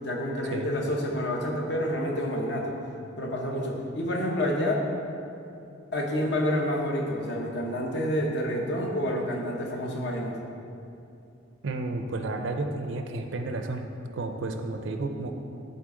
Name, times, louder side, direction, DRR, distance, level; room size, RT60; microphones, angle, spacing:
voice 1, 0.0-2.8 3.2-4.9 5.9-10.3, equal, 55° left, 0 dB, 0.9 m, -28 dB
voice 2, 11.6-13.9 14.1-15.3, right 2 dB, 70° right, 5 dB, 0.5 m, -32 dB
9.1 x 4.1 x 3.8 m, 2.6 s
head